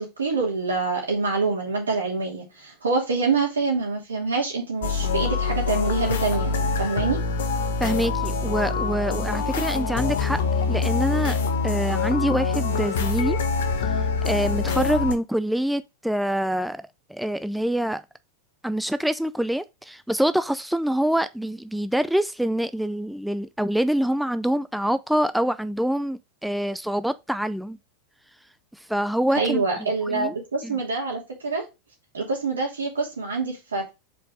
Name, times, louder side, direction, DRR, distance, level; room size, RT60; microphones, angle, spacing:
voice 1, 0.0-7.2 29.3-31.6 32.1-33.9, right 4 dB, 80° right, 2.7 m, -26 dB
Outer Space, 4.8-15.1, left 4 dB, 65° left, 1.0 m, -25 dB
voice 2, 7.8-10.4 10.7-11.4 11.6-13.4 13.8-14.0 14.3-16.8 17.1-18.0 18.6-27.8 28.7-30.4 30.6-30.8, right 1 dB, ahead, 0.4 m, -25 dB
5.2 x 4.6 x 5.0 m
figure-of-eight pair, 90°, 0 cm